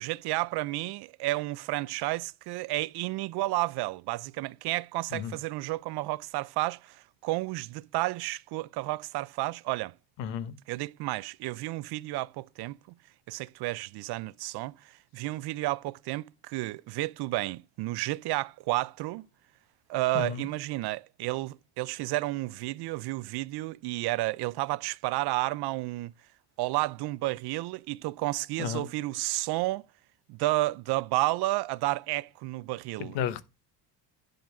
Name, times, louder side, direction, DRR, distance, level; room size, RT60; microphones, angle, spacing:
voice 1, 0.0-9.9 10.7-12.8 13.3-19.3 19.9-26.1 26.6-29.9 30.3-33.2, right 19 dB, 65° right, 0.5 m, -31 dB
voice 2, 10.2-10.5 20.1-20.5 28.6-28.9 33.0-33.4, left 8 dB, 90° left, 1.1 m, -33 dB
10.5 x 3.9 x 6.0 m
cardioid pair, 145°, 42 cm